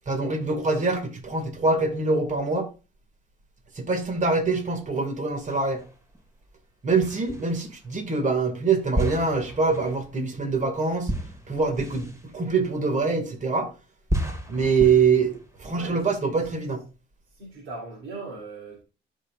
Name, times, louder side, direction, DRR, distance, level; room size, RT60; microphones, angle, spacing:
voice 1, 0.1-2.7 3.8-5.8 6.8-11.1 11.5-13.7 14.5-16.8, right 4 dB, 40° right, 2.1 m, -24 dB
sound 1, 5.5-6.2 7.0-7.9 8.9-13.4 14.1-16.1, right 1 dB, 15° right, 2.1 m, -33 dB
voice 2, 15.8-16.6 17.4-18.8, right 3 dB, 80° right, 3.4 m, -40 dB
13.0 x 5.5 x 2.5 m
cardioid pair, 90°, 20 cm